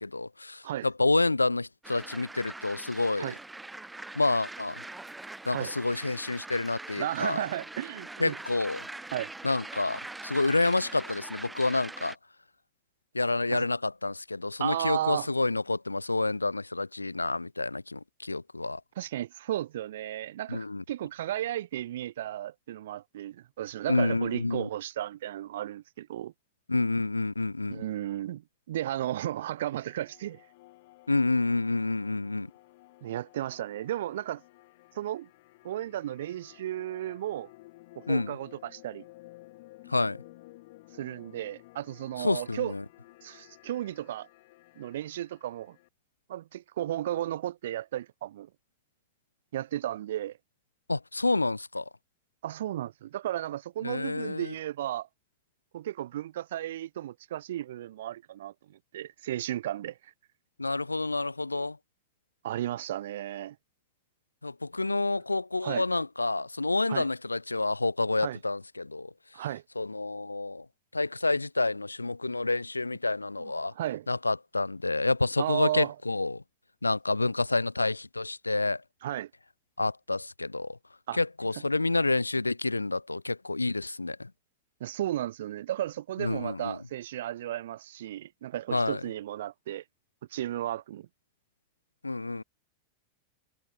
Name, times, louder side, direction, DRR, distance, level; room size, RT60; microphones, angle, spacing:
voice 1, 0.0-3.3 4.1-4.8 5.5-7.4 8.2-8.8 9.4-12.2 13.1-18.8 20.5-20.8 23.9-24.7 26.7-27.8 31.1-32.5 38.1-38.4 39.9-40.2 42.2-42.8 50.9-51.9 53.8-54.5 60.6-61.8 64.4-69.1 69.8-70.7 70.9-73.7 74.1-76.4 76.8-78.8 79.8-80.8 81.1-84.3 86.2-86.8 88.7-89.0 92.0-92.4, left 2 dB, 80° left, 0.6 m, -29 dB
sound 1, 1.8-12.2, right 2 dB, 5° right, 1.4 m, -43 dB
voice 2, 7.0-8.4 9.1-9.3 13.5-13.7 14.6-15.3 19.0-26.3 27.7-30.5 33.0-34.4 34.9-35.3 35.6-37.5 38.0-39.0 40.9-42.7 43.2-44.3 44.8-45.8 46.3-48.5 49.5-50.4 52.4-55.1 55.7-60.1 62.4-63.6 65.6-65.9 66.9-67.1 68.2-68.4 69.3-69.6 73.4-74.1 75.4-76.0 79.0-79.3 81.1-81.2 84.8-89.8 90.3-91.1, right 12 dB, 60° right, 1.6 m, -34 dB
sound 2, 29.0-45.9, left 20 dB, 50° left, 3.6 m, -55 dB
figure-of-eight pair, 90°, 0 cm